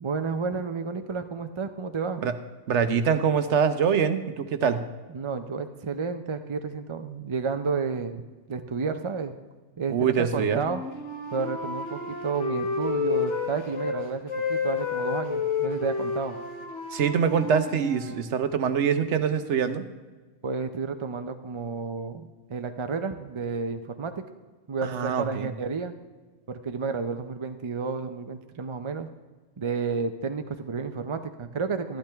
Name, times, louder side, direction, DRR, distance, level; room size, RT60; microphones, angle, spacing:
voice 1, 0.0-2.2 5.1-8.2 8.5-9.4 9.8-10.8 11.3-16.4 20.4-24.2 24.7-25.9 26.5-29.1 29.6-32.0, right 5 dB, 40° right, 8 dB, 0.4 m, -31 dB
voice 2, 2.7-4.8 9.9-10.6 16.9-19.9 24.8-25.5, right 7 dB, 75° right, 10 dB, 1.1 m, -24 dB
Wind instrument woodwind instrument, 10.6-14.0 14.3-18.2, left 5 dB, 75° left, 1.9 m, -30 dB
13.0 x 12.0 x 3.4 m, 1.3 s
omnidirectional pair, 1.2 m